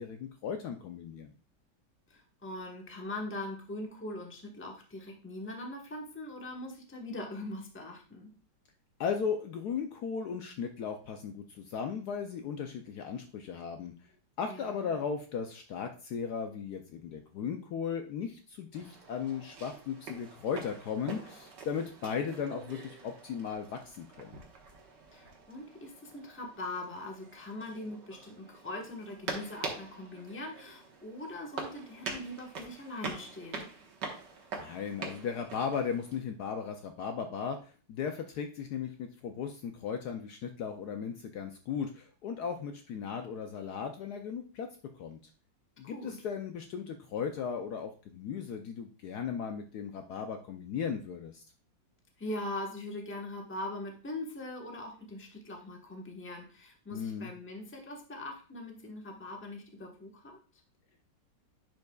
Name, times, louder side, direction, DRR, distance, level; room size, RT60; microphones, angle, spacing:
voice 1, 0.0-1.3 9.0-13.9 14.4-24.4 34.6-44.7 45.0-45.2 45.8-51.4 56.9-57.3, left 6 dB, 70° left, 5 dB, 1.0 m, -36 dB
voice 2, 2.1-8.3 14.4-14.9 25.1-33.6 45.9-46.2 52.2-60.4, left 1 dB, 10° left, 1 dB, 0.9 m, -41 dB
sound 1, 18.7-36.2, right 4 dB, 65° right, 1.8 m, -45 dB
10.5 x 5.2 x 2.3 m, 0.37 s
omnidirectional pair, 2.0 m